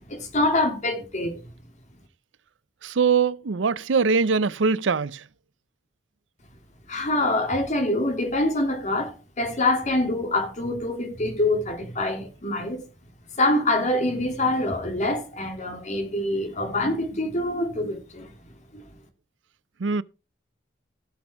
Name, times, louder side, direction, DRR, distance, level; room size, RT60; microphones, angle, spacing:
voice 1, 0.1-1.4 6.9-12.8 13.3-18.3 18.7-18.8, left 2 dB, 40° left, 3.4 m, -25 dB
voice 2, 2.8-5.2 19.8-20.0, right 5 dB, 85° right, 0.6 m, -22 dB
16.5 x 6.2 x 4.6 m
head